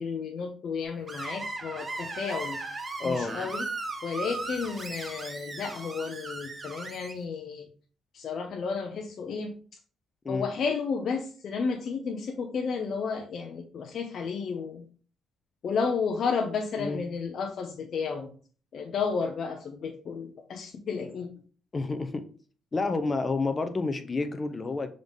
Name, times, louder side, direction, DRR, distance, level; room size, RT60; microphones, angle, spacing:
voice 1, 0.0-2.6 3.0-3.7 4.0-7.7 8.1-9.5 10.3-14.9 15.6-18.3 18.7-21.4, left 5 dB, 60° left, 3 dB, 0.8 m, -32 dB
Screech, 1.1-7.1, right 3 dB, 30° right, 1.1 m, -37 dB
voice 2, 3.0-3.3 10.2-10.5 16.8-17.0 21.7-22.3 22.7-24.9, left 3 dB, 30° left, 10 dB, 0.7 m, -29 dB
6.8 x 3.9 x 3.5 m, 0.41 s
cardioid pair, 90°, 0 cm